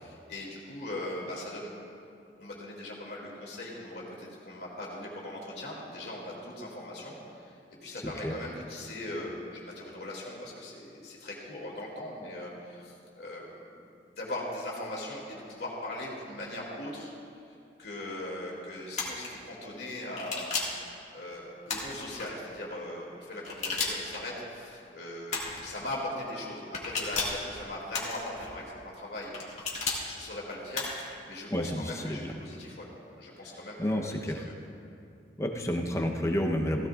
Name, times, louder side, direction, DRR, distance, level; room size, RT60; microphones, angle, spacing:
voice 1, 0.0-1.7 2.4-7.5 7.8-13.8 14.1-17.1 17.8-29.3 30.0-30.9 31.3-34.6, left 1 dB, 65° left, -3 dB, 2.6 m, -40 dB
sound 1, 19.0-19.3 20.2-20.8 21.7-22.3 23.4-24.2 25.3-25.7 26.7-27.4 27.9-28.5 29.3-30.0 30.7-31.1, left 4 dB, 40° left, 2.0 m, -33 dB
voice 2, 31.5-32.3 33.8-34.5 35.4-36.9, equal, 15° left, 1 dB, 0.9 m, -30 dB
16.5 x 16.0 x 2.5 m, 2.5 s
head